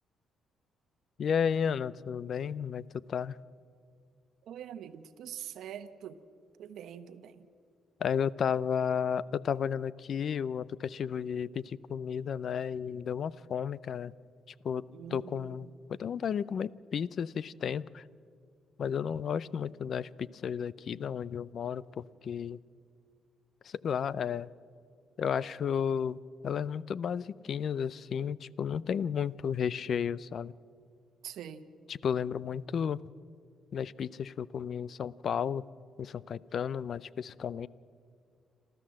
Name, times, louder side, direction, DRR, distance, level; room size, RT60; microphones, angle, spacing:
voice 1, 1.2-3.4 8.0-14.1 14.6-18.0 18.8-22.6 23.6-24.5 25.2-30.5 31.9-33.0 33.7-35.6 36.0-37.7, left 7 dB, 55° left, 21 dB, 0.5 m, -33 dB
voice 2, 4.5-6.2 6.6-7.5 14.9-15.7 31.2-31.6, right 9 dB, 75° right, 9 dB, 1.0 m, -44 dB
27.0 x 14.0 x 7.6 m, 2.2 s
cardioid pair, 90°, 0 cm